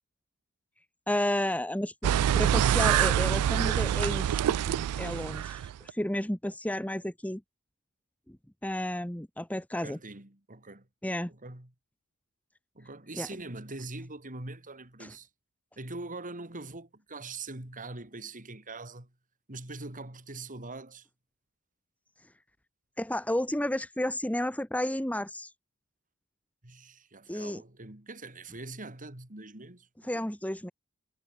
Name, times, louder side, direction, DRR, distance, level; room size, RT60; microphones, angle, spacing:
voice 1, 1.1-1.9 2.4-4.2 4.7-7.4 8.3-8.4 8.6-10.0 11.0-11.3 13.2-13.3 15.0-15.1 23.0-25.5 27.3-27.6 30.0-30.7, left 1 dB, 5° left, 1.6 m, -32 dB
sound 1, 2.0-5.9, right 10 dB, 85° right, 0.3 m, -26 dB
voice 2, 9.8-10.9 11.3-11.7 12.7-15.3 15.8-19.1 19.5-21.1 26.6-30.3, right 3 dB, 35° right, 3.4 m, -43 dB
head